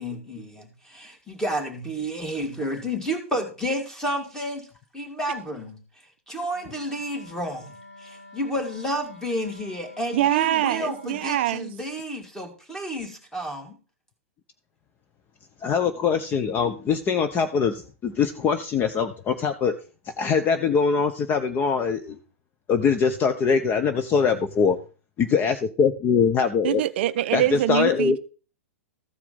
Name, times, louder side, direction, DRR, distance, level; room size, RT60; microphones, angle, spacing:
voice 1, 0.0-4.7 4.9-5.8 6.3-13.8, equal, 5° left, 2.6 m, -31 dB
Wind instrument woodwind instrument, 6.5-11.4, left 2 dB, 70° left, 3.9 m, -48 dB
voice 2, 10.1-11.7 26.6-28.2, right 13 dB, 50° right, 0.4 m, -24 dB
voice 3, 15.6-19.7 20.2-22.2 22.7-24.7 25.2-26.8 27.3-28.2, left 6 dB, 25° left, 0.8 m, -22 dB
14.0 x 4.9 x 5.3 m
figure-of-eight pair, 110°, 7 cm